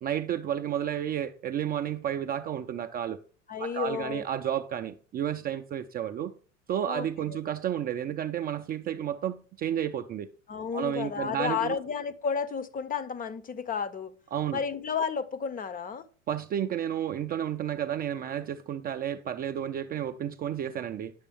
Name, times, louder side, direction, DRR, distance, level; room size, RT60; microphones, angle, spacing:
voice 1, 0.0-3.2 3.6-6.3 6.7-10.3 10.7-11.7 14.3-14.6 16.3-21.1, right 10 dB, 25° right, 0.4 m, -31 dB
voice 2, 3.5-4.2 6.9-7.4 10.5-14.1 14.5-16.1, left 6 dB, 20° left, 0.6 m, -32 dB
10.0 x 6.6 x 3.5 m
figure-of-eight pair, 80°, 39 cm